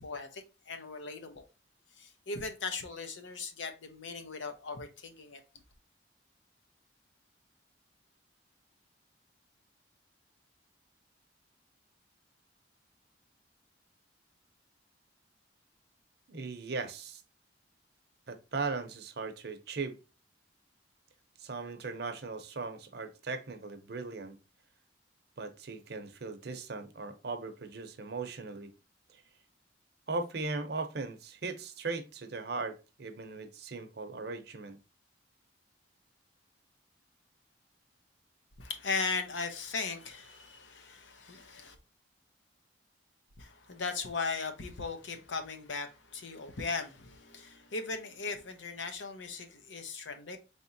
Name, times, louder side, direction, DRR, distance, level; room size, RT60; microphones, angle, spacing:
voice 1, 0.0-1.4 2.0-5.4 38.6-41.8 43.4-50.4, left 4 dB, 85° left, 0.8 m, -38 dB
voice 2, 16.3-17.2 18.3-20.0 21.4-24.4 25.4-28.7 29.1-29.2 30.1-34.8, right 3 dB, 55° right, 0.6 m, -38 dB
4.1 x 3.5 x 2.6 m
head